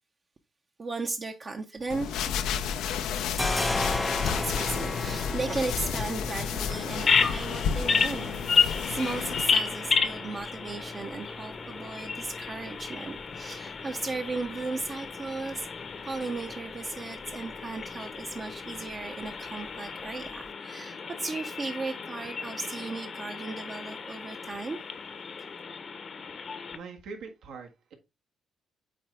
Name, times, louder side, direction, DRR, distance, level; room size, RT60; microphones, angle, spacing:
voice 1, 0.8-2.1 2.7-2.9 4.3-15.7 16.0-24.8, right 3 dB, 40° right, 0.8 m, -36 dB
sound 1, 1.8-2.7 3.0-20.5, left 2 dB, 10° left, 0.5 m, -38 dB
sound 2, 1.9-9.4, left 7 dB, 85° left, 0.7 m, -32 dB
Bird vocalization bird call bird song, 7.0-26.8, left 5 dB, 50° left, 0.9 m, -32 dB
voice 2, 26.3-27.9, right 4 dB, 80° right, 1.5 m, -44 dB
8.6 x 3.9 x 3.4 m
cardioid pair, 90°, 0 cm